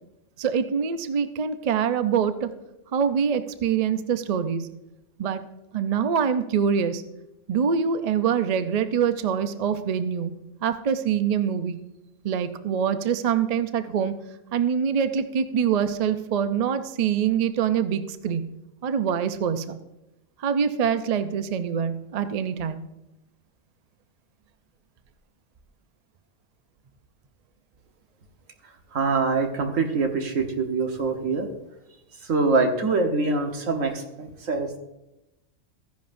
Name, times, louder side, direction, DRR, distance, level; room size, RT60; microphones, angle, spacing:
voice 1, 0.4-2.5 2.9-4.7 5.2-5.4 5.7-7.0 7.5-11.8 12.2-14.1 14.5-18.5 18.8-19.8 20.4-22.8, right 7 dB, 50° right, 10 dB, 0.5 m, -25 dB
voice 2, 28.9-31.5 32.2-34.8, right 3 dB, 80° right, 4 dB, 1.5 m, -24 dB
14.5 x 10.5 x 2.6 m, 0.92 s
omnidirectional pair, 1.3 m